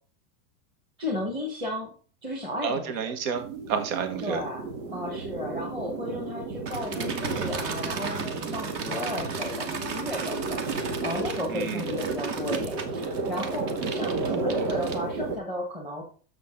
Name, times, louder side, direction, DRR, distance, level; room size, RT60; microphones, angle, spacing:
voice 1, 1.0-1.9 2.2-3.1 4.2-4.6 4.9-16.0, left 1 dB, 10° right, -2 dB, 1.5 m, -34 dB
voice 2, 2.6-4.4 11.5-11.8, right 7 dB, 55° right, 7 dB, 1.6 m, -30 dB
sound 1, 3.3-15.4, right 4 dB, 85° right, 2.1 m, -33 dB
sound 2, 6.7-15.4, right 4 dB, 30° right, 1.0 m, -36 dB
6.7 x 6.7 x 3.8 m, 0.39 s
supercardioid pair, 165°, 49 cm